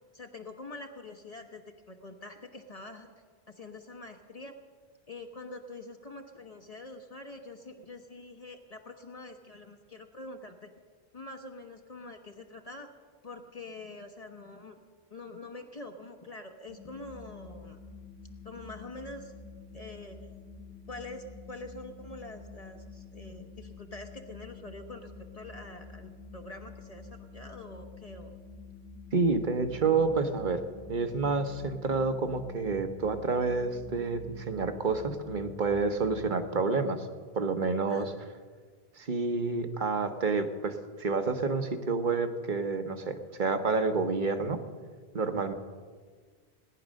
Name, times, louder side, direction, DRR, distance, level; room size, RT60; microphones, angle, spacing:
voice 1, 0.1-3.1 3.5-4.6 5.1-10.7 11.1-12.9 13.2-14.8 15.1-17.8 18.4-19.3 19.7-20.2 20.9-28.3 37.9-38.2, left 2 dB, 40° left, 4 dB, 1.1 m, -45 dB
sound 1, 16.7-36.2, left 4 dB, 85° left, 2.0 m, -48 dB
voice 2, 29.1-30.6 30.9-37.1 37.3-38.1 39.0-44.6 45.1-45.5, right 4 dB, 50° right, 8 dB, 1.2 m, -29 dB
18.0 x 10.0 x 6.3 m, 1.5 s
omnidirectional pair, 1.1 m